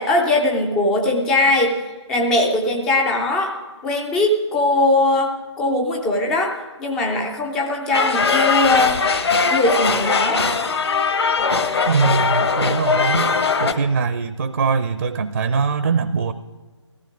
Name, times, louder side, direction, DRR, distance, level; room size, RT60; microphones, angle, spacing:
voice 1, 0.0-1.8 2.1-3.6 3.8-9.0 9.5-10.4, left 2 dB, 5° left, 2 dB, 0.3 m, -20 dB
sound 1, 7.9-13.7, left 5 dB, 60° left, 1.2 m, -20 dB
voice 2, 11.9-13.3 13.6-16.3, right 5 dB, 45° right, 12 dB, 0.6 m, -22 dB
15.0 x 14.5 x 4.9 m, 1.4 s
figure-of-eight pair, 145°, 15 cm